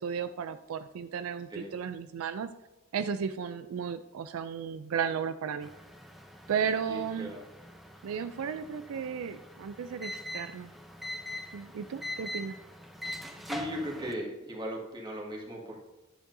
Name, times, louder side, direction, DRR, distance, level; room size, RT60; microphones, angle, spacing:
voice 1, 0.0-2.5 2.9-5.7 6.5-7.3 8.0-10.7 11.5-12.6, right 7 dB, 75° right, 11 dB, 0.4 m, -34 dB
sound 1, 5.6-14.1, left 1 dB, ahead, 0.6 m, -43 dB
voice 2, 6.9-7.4 13.5-15.8, equal, 20° right, -2 dB, 1.8 m, -37 dB
10.0 x 7.2 x 2.7 m, 1.1 s
head